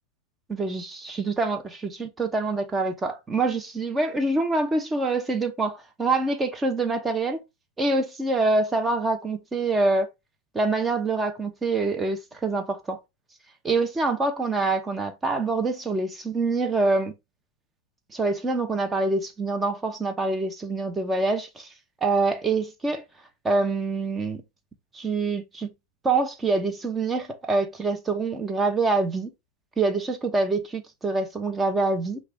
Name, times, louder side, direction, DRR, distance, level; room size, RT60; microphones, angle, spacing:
voice 1, 0.5-7.4 7.8-10.1 10.5-13.0 13.6-17.1 18.1-21.7 22.0-23.0 23.4-24.4 24.9-25.7 26.0-29.3 29.8-32.2, right 3 dB, 15° right, 1.0 m, -25 dB
5.8 x 2.5 x 3.5 m
hypercardioid pair, 110°, 0 cm